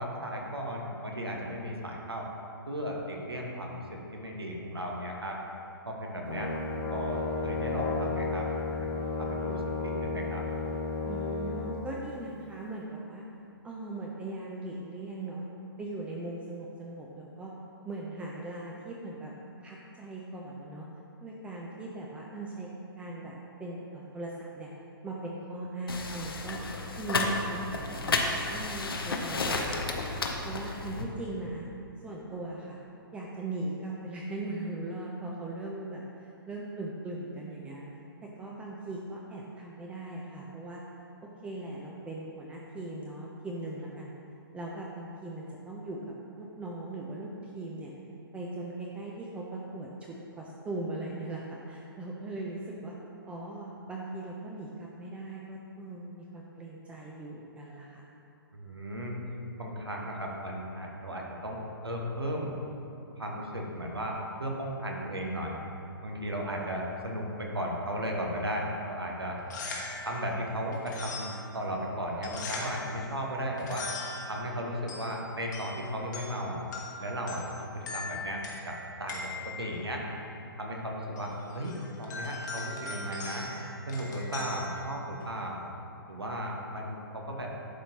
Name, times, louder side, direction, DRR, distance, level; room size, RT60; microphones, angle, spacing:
voice 1, 0.0-2.3 2.7-5.4 5.8-8.5 8.8-10.5 58.5-59.1 59.5-62.6 63.2-65.5 66.0-69.4 70.0-73.9 74.2-76.6 77.0-80.0 80.6-83.5 83.9-85.6 86.1-87.5, equal, 85° right, -1 dB, 1.2 m, -35 dB
Brass instrument, 6.2-11.7, left 4 dB, 25° left, 0.7 m, -33 dB
voice 2, 11.0-13.2 13.6-15.5 15.8-17.5 17.8-19.3 19.6-20.9 21.2-22.7 23.0-24.7 25.0-26.6 27.0-30.0 30.4-31.7 32.0-32.8 33.1-37.8 38.2-40.8 41.4-44.1 44.5-47.9 48.3-53.0 53.2-58.0, right 2 dB, 10° right, -3 dB, 0.5 m, -39 dB
sound 1, 25.9-31.0, left 3 dB, 70° left, 0.8 m, -32 dB
sound 2, 69.3-85.5, left 3 dB, 50° left, 1.3 m, -42 dB
11.5 x 4.3 x 2.8 m, 2.7 s
figure-of-eight pair, 125°, 13 cm